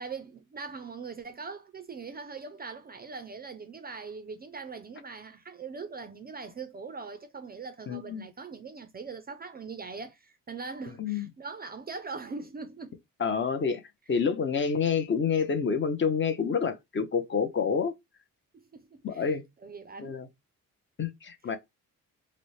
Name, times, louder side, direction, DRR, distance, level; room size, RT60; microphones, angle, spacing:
voice 1, 0.0-13.0 18.5-19.4 19.6-20.2 21.5-21.6, right 4 dB, 30° right, 0.4 m, -41 dB
voice 2, 7.9-8.2 11.0-11.3 13.2-13.8 14.1-17.9 19.0-19.4 20.0-20.3 21.0-21.6, left 6 dB, 35° left, 0.5 m, -28 dB
3.9 x 2.0 x 3.1 m
cardioid pair, 130°, 34 cm